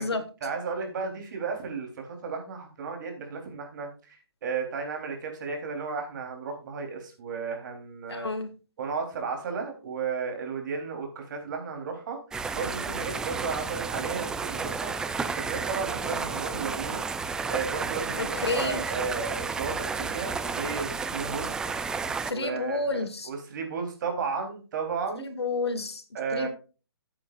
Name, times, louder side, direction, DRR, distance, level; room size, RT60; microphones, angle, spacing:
voice 1, 0.0-8.3 8.8-12.2 12.5-14.9 15.3-17.0 17.5-21.5 22.3-25.3 26.1-26.5, right 5 dB, 50° right, 3 dB, 3.6 m, -34 dB
voice 2, 8.1-8.5 18.2-18.8 22.3-23.3 25.1-26.0 26.3-26.5, left 3 dB, 85° left, 9 dB, 2.2 m, -30 dB
sound 1, 12.3-22.3, right 5 dB, 5° right, 0.4 m, -32 dB
13.5 x 8.7 x 2.5 m, 0.34 s
hypercardioid pair, 145°, 13 cm